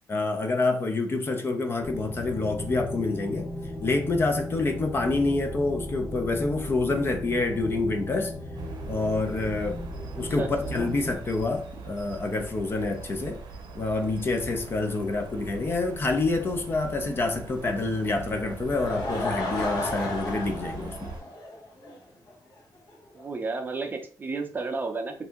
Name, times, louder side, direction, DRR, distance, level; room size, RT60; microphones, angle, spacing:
voice 1, 0.1-3.5 3.8-8.3 8.9-9.8 10.2-13.4 13.7-21.1, left 3 dB, 30° left, 0.4 m, -27 dB
sound 1, 1.8-11.1, equal, 5° left, 0.8 m, -36 dB
sound 2, 8.5-21.2, right 3 dB, 80° right, 0.8 m, -42 dB
voice 2, 10.4-10.9 23.1-25.3, right 3 dB, 25° right, 0.5 m, -32 dB
Laughter / Crowd, 18.5-22.0 22.3-22.4 22.9-23.0 23.2-23.3, left 1 dB, 65° left, 1.2 m, -33 dB
2.7 x 2.5 x 3.5 m
wide cardioid pair, 145°, 7 cm